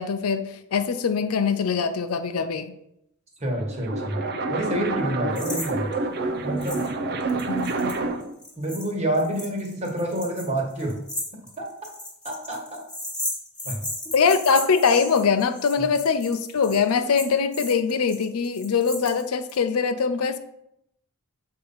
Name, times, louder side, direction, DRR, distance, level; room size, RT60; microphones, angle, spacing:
voice 1, 0.0-2.7 7.5-7.9 14.1-20.4, left 5 dB, 80° left, 10 dB, 0.5 m, -23 dB
voice 2, 3.4-4.2 4.5-5.9 6.4-6.8 8.6-11.0 11.3-11.6 12.2-12.8 13.6-13.8 15.8-15.9, right 1 dB, 30° right, -1 dB, 1.5 m, -28 dB
sound 1, 3.6-8.4, right 3 dB, 50° right, 0.6 m, -28 dB
sound 2, 5.4-5.7 5.9-6.0 6.6-6.9 7.2-19.6, left 1 dB, 5° left, 1.5 m, -35 dB
7.7 x 2.8 x 5.5 m, 0.78 s
head